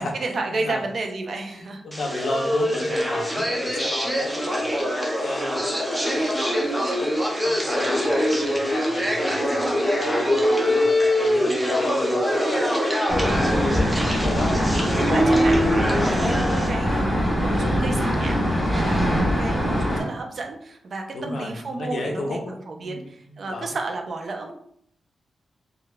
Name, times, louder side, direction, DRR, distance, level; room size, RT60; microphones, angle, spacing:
voice 1, 0.2-1.8 2.1-2.3 13.4-24.5, right 3 dB, 50° right, 3 dB, 0.5 m, -32 dB
voice 2, 1.3-7.1 7.4-10.8 11.2-12.2 12.5-12.6 14.2-15.0 21.1-23.7, left 2 dB, 65° left, 0 dB, 0.7 m, -34 dB
sound 1, 1.9-16.7, equal, 5° right, 0.6 m, -23 dB
sound 2, 13.1-20.0, equal, 10° left, 1.2 m, -23 dB
4.7 x 2.3 x 2.2 m, 0.67 s
wide cardioid pair, 145°, 0 cm